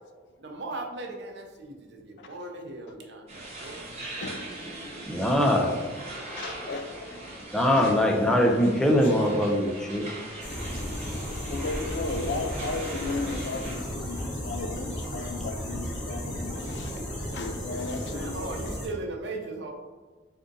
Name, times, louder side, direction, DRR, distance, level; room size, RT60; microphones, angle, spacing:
voice 1, 0.4-3.8 5.0-5.4 5.8-6.5 18.1-19.7, right 2 dB, 65° right, 2 dB, 0.6 m, -39 dB
sound 1, 3.3-13.8, right 1 dB, 35° right, 1.0 m, -41 dB
voice 2, 5.1-5.8 7.5-10.1, equal, 5° left, 0 dB, 0.4 m, -22 dB
voice 3, 5.7-7.3 7.7-8.0 9.1-9.3 11.5-16.9 17.3-18.4, left 3 dB, 65° left, 6 dB, 0.4 m, -35 dB
sound 2, 10.4-18.9, equal, 80° left, 1.3 m, -34 dB
3.5 x 2.6 x 3.8 m, 1.3 s
head